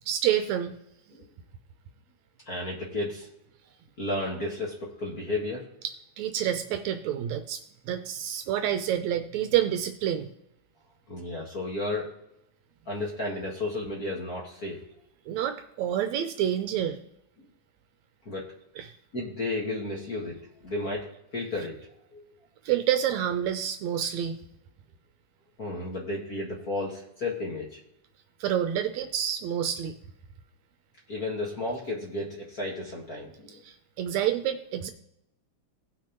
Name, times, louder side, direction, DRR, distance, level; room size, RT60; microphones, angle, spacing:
voice 1, 0.1-0.7 5.8-10.3 15.3-17.0 18.8-18.9 22.7-24.4 28.4-29.9 33.6-34.9, right 10 dB, 75° right, 8 dB, 1.8 m, -28 dB
voice 2, 2.4-3.3 4.0-5.7 11.1-12.1 12.9-14.8 17.4-17.5 18.2-18.5 19.1-21.1 21.3-21.7 22.1-22.2 25.6-27.8 31.1-33.6, left 2 dB, 40° left, -3 dB, 1.5 m, -33 dB
18.0 x 6.1 x 3.0 m, 0.83 s
omnidirectional pair, 3.5 m